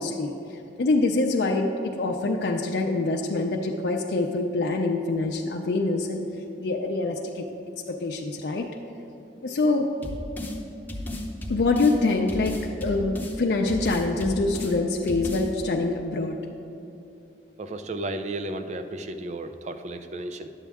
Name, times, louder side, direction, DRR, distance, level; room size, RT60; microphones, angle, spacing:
voice 1, 0.0-1.7 1.9-6.2 6.6-7.4 7.9-8.7 9.4-9.9 11.5-12.6 12.8-16.4, left 3 dB, 65° left, 0 dB, 0.5 m, -25 dB
sound 1, 10.0-10.6 10.9-12.0 12.3-13.4 13.7-14.7 15.1-15.5, left 1 dB, 10° left, 0.8 m, -33 dB
voice 2, 17.6-20.5, right 2 dB, 40° right, 8 dB, 0.4 m, -33 dB
10.5 x 7.3 x 3.5 m, 2.7 s
head